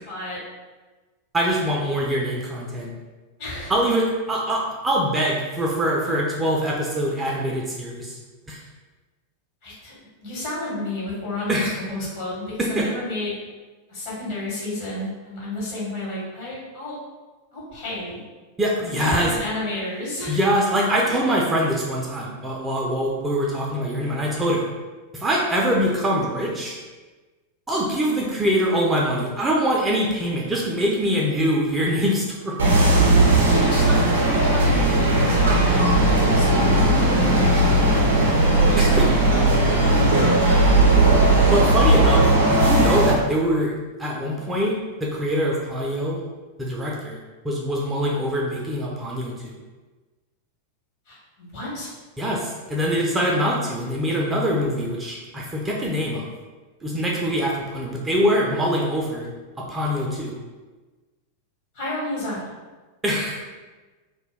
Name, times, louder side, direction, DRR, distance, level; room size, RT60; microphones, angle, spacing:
voice 1, 0.1-0.4 3.4-3.7 9.6-9.9 10.2-13.4 13.9-17.0 17.5-18.2 18.9-20.4 33.4-35.9 36.2-40.7 51.1-51.9 61.7-62.4, left 1 dB, 50° left, -6 dB, 1.1 m, -31 dB
voice 2, 1.3-2.9 3.7-8.2 8.5-8.6 11.5-11.8 12.6-12.9 18.6-19.3 20.3-24.6 25.1-26.8 27.7-32.7 38.8-39.1 41.5-43.7 44.0-44.7 45.0-46.2 46.6-47.2 47.4-49.5 52.2-56.3 56.8-59.3 59.6-60.3 63.0-63.5, equal, 15° right, -3 dB, 0.4 m, -23 dB
sound 1, 32.6-43.1, right 2 dB, 70° right, 0.6 m, -17 dB
2.2 x 2.2 x 3.3 m, 1.3 s
figure-of-eight pair, 90°, 0 cm